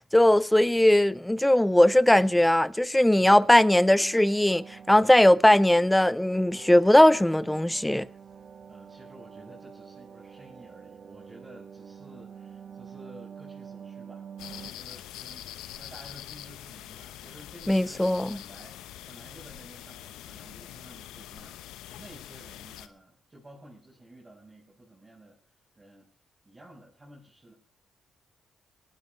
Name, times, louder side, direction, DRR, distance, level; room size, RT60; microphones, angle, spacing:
voice 1, 0.0-4.6 4.9-8.1 17.7-18.4, left 1 dB, 10° left, 0.7 m, -19 dB
voice 2, 1.9-2.5 3.1-4.2 5.4-5.6 8.7-18.8 19.1-25.4 25.8-26.1 26.4-27.5, right 1 dB, 25° right, 6.5 m, -52 dB
sound 1, 3.7-14.7, right 7 dB, 50° right, 1.0 m, -46 dB
sound 2, 14.4-22.9, left 13 dB, 85° left, 1.0 m, -44 dB
18.5 x 12.0 x 4.5 m
supercardioid pair, 60°, 0 cm